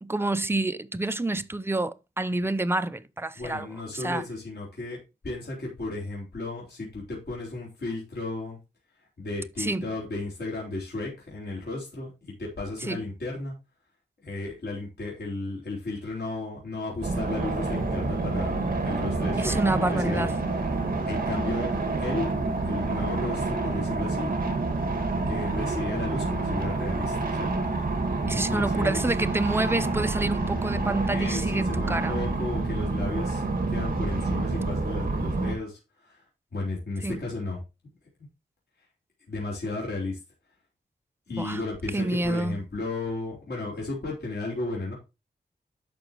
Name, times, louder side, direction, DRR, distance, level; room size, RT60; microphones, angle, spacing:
voice 1, 0.0-3.7 3.9-4.2 9.6-9.9 12.9-13.0 19.4-20.3 28.3-32.2 37.0-37.2 41.4-41.6 41.9-42.6, right 2 dB, 15° right, 0.6 m, -28 dB
voice 2, 3.4-5.0 5.2-8.6 9.2-13.5 14.2-20.3 20.5-20.6 21.1-21.7 22.0-22.3 22.6-24.3 25.2-27.5 28.3-29.0 29.7-29.9 31.1-33.4 33.7-36.2 36.5-37.6 39.3-40.2 41.3-44.9, left 2 dB, 65° left, 3.9 m, -34 dB
sound 1, 17.0-35.5, right 3 dB, 50° right, 2.0 m, -28 dB
11.0 x 6.3 x 3.0 m
wide cardioid pair, 155°, 18 cm